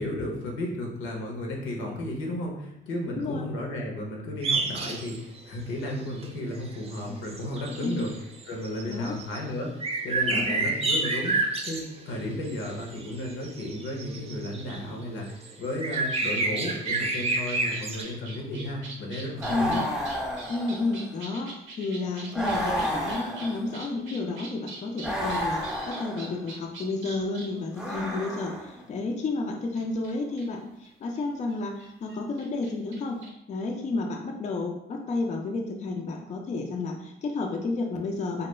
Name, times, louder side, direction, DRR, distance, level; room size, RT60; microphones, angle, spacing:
voice 1, 0.0-8.1 8.5-11.4 11.6-19.9, left 1 dB, 85° left, 0 dB, 0.7 m, -34 dB
voice 2, 3.1-3.4 7.1-7.2 7.8-8.0 8.9-9.2 10.3-10.7 19.5-19.8 20.5-33.2 33.5-38.5, left 3 dB, 35° left, 2 dB, 0.4 m, -31 dB
sound 1, 4.4-5.4 5.8-6.3 6.9-7.0 7.2-9.4 9.8-12.2 12.5-14.8 15.2-18.0, right 3 dB, 30° right, 0.4 m, -29 dB
sound 2, 15.9-28.1 29.2-29.3 29.8-31.2 31.5-31.6 31.8-33.3, right 3 dB, 75° right, 0.6 m, -44 dB
sound 3, 19.4-21.1 22.3-23.9 25.0-26.4 27.7-28.8, equal, 5° right, 0.9 m, -31 dB
2.2 x 2.1 x 3.0 m, 0.81 s
cardioid pair, 90°, 20 cm